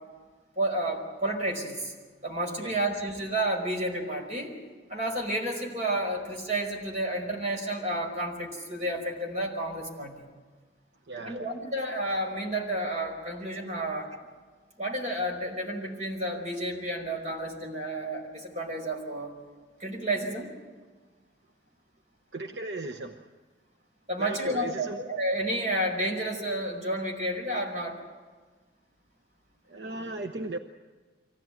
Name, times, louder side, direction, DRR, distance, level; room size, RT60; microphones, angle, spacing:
voice 1, 0.6-1.9 2.2-4.5 4.9-10.3 11.3-14.2 14.8-19.3 19.8-20.5 24.1-28.0, right 1 dB, 40° right, 0 dB, 5.2 m, -31 dB
voice 2, 11.1-11.4 22.3-23.3 24.2-25.0 29.7-30.6, right 2 dB, 70° right, 5 dB, 1.0 m, -36 dB
24.5 x 16.5 x 9.2 m, 1.4 s
head